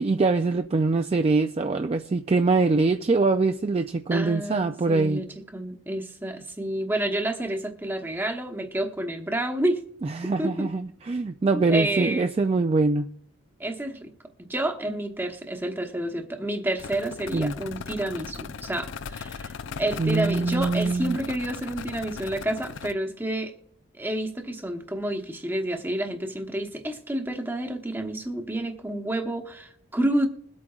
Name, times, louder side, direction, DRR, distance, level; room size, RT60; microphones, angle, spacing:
voice 1, 0.0-5.2 10.0-13.1 17.3-17.5 20.0-21.2, right 3 dB, 30° right, 7 dB, 0.3 m, -23 dB
voice 2, 4.1-5.3 5.5-9.8 10.4-10.7 11.5-12.3 13.6-14.1 14.4-23.5 24.0-30.3, right 1 dB, 10° right, 5 dB, 0.9 m, -29 dB
sound 1, 16.8-22.9, left 5 dB, 65° left, 0.4 m, -38 dB
21.5 x 8.5 x 2.4 m, 0.70 s
head